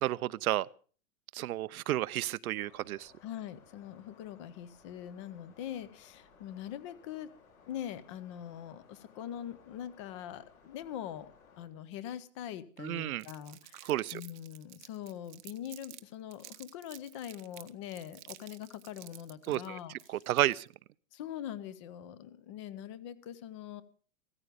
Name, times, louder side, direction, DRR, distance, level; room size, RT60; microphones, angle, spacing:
voice 1, 0.0-0.7 1.3-3.1 12.8-13.3 13.8-14.2 19.5-19.8 20.1-20.7, right 14 dB, 80° right, 0.7 m, -31 dB
sound 1, 2.6-11.7, left 5 dB, 80° left, 5.1 m, -61 dB
voice 2, 3.2-7.3 7.7-11.3 11.6-19.9 21.1-23.8, left 10 dB, 20° left, 0.6 m, -43 dB
Crumpling crinkling, 13.2-16.0 16.3-20.7, right 16 dB, 35° right, 0.7 m, -52 dB
15.5 x 14.0 x 5.1 m
supercardioid pair, 170°, 43 cm